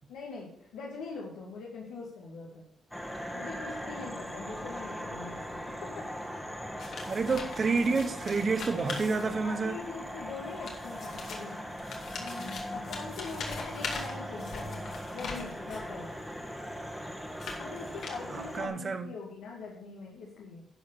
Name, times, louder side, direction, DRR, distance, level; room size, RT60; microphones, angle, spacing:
voice 1, 0.1-2.7 3.3-6.1 9.4-11.6 12.2-14.8 15.1-16.1 17.6-20.6, left 4 dB, 90° left, 2.3 m, -42 dB
sound 1, 2.9-18.7, equal, ahead, 1.6 m, -40 dB
sound 2, 6.8-9.7 10.4-15.9 16.6-18.5, left 4 dB, 65° left, 2.3 m, -42 dB
voice 2, 7.1-9.7 18.3-19.1, right 4 dB, 40° right, 1.1 m, -29 dB
11.5 x 4.8 x 7.0 m
cardioid pair, 90°, 0 cm